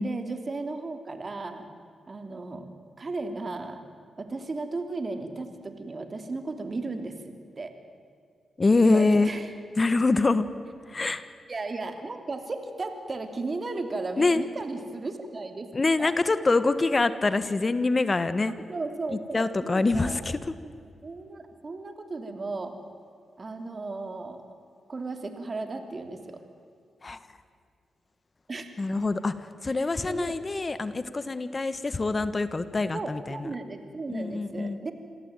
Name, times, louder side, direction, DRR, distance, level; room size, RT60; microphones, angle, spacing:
voice 1, 0.0-1.7 2.1-2.7 3.0-3.8 4.2-7.7 8.8-9.5 11.5-15.7 16.0-16.2 18.7-20.2 20.6-20.7 21.0-22.8 23.4-24.4 24.9-26.4 28.5-28.7 29.7-30.3 32.9-34.9, right 3 dB, 45° right, 7 dB, 3.1 m, -35 dB
voice 2, 8.6-9.3 9.8-10.4 10.9-11.2 14.2-14.4 15.7-18.5 19.1-20.4 27.0-27.2 28.8-33.5 34.1-34.8, left 3 dB, 35° left, 13 dB, 1.4 m, -25 dB
27.0 x 17.0 x 9.1 m, 2.3 s
cardioid pair, 55°, 0 cm